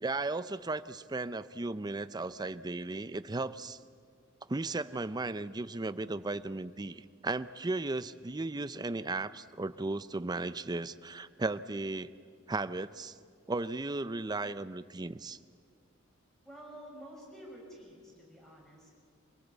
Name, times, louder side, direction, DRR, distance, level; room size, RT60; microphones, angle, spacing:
voice 1, 0.0-3.8 4.5-12.1 12.5-13.2 13.5-15.4, right 2 dB, 20° right, 14 dB, 0.5 m, -35 dB
voice 2, 16.4-19.1, equal, ahead, -3 dB, 6.1 m, -50 dB
26.0 x 17.5 x 8.2 m, 2.1 s
head